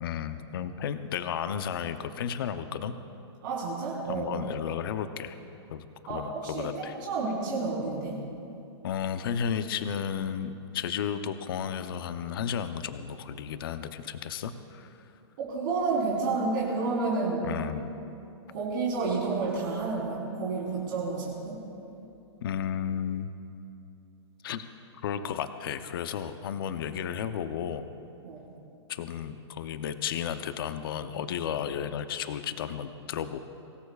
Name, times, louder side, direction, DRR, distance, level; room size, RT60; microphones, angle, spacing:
voice 1, 0.0-3.0 4.1-5.4 5.7-7.0 8.8-14.9 17.4-17.9 22.4-23.3 24.4-24.7 25.0-27.9 28.9-33.4, left 8 dB, 50° left, 9 dB, 0.7 m, -33 dB
voice 2, 3.4-4.3 6.1-8.2 15.4-17.5 18.5-21.6 28.2-28.4, right 3 dB, 45° right, -5 dB, 3.8 m, -30 dB
24.0 x 18.5 x 2.4 m, 2.7 s
hypercardioid pair, 170°, 15 cm